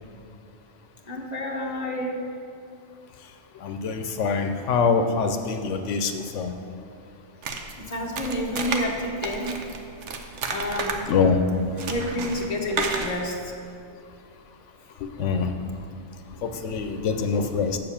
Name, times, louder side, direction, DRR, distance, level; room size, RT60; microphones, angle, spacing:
voice 1, 1.1-2.2 7.8-9.6 10.5-10.9 11.8-13.4, left 1 dB, 35° left, 0 dB, 1.2 m, -29 dB
voice 2, 3.6-6.5 11.1-11.4 15.0-15.5 16.4-17.8, left 5 dB, 85° left, 6 dB, 1.0 m, -24 dB
sound 1, 7.4-13.2, right 4 dB, 80° right, 1.1 m, -31 dB
7.8 x 6.9 x 7.0 m, 2.5 s
omnidirectional pair, 1.2 m